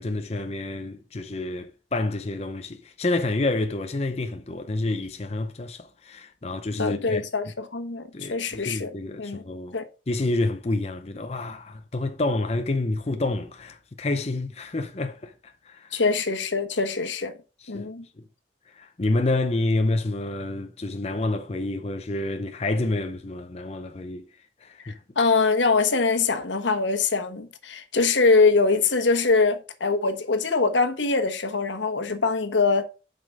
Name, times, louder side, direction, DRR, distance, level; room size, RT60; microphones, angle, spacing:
voice 1, 0.0-7.2 8.1-9.8 10.1-16.0 17.6-17.9 18.8-24.3 24.6-25.0, left 2 dB, 35° left, 0.6 m, -28 dB
voice 2, 6.8-8.9 9.2-9.4 9.7-9.8 15.9-17.4 17.7-18.0 24.8-32.8, left 4 dB, 85° left, 1.3 m, -23 dB
7.5 x 5.2 x 5.2 m
head